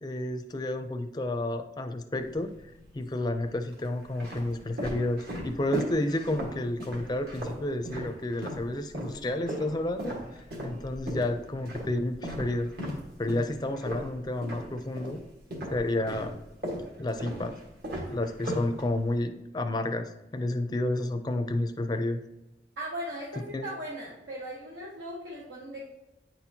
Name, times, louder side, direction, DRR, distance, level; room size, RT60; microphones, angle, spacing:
voice 1, 0.0-2.5 2.9-12.7 13.2-15.2 15.7-16.3 17.0-17.6 18.1-22.2 23.5-23.7, left 1 dB, 25° left, 7 dB, 0.4 m, -31 dB
sound 1, 2.1-2.9 3.5-8.7 8.9-15.2 15.5-19.2, equal, 60° right, 1.6 m, -37 dB
voice 2, 22.8-25.9, right 1 dB, 90° right, -5 dB, 1.3 m, -38 dB
9.0 x 4.3 x 2.8 m, 0.95 s
head